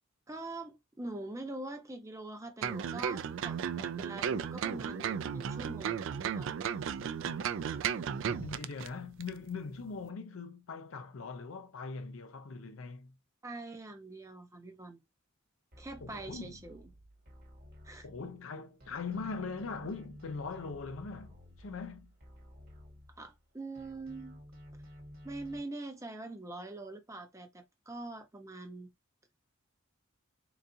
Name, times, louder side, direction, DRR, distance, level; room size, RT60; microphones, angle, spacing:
voice 1, 0.3-6.6 13.4-15.0 15.8-16.8 17.8-18.0 23.2-24.5 25.2-28.9, right 2 dB, 15° right, 0.7 m, -44 dB
sound 1, 2.6-8.9 9.2-9.3, right 7 dB, 65° right, 0.3 m, -35 dB
voice 2, 8.3-13.1 16.0-16.6 18.0-22.1, left 4 dB, 70° left, 0.5 m, -41 dB
sound 2, 15.7-18.5 18.8-23.5 23.8-25.6, equal, 50° right, 1.3 m, -53 dB
3.9 x 2.4 x 2.7 m
head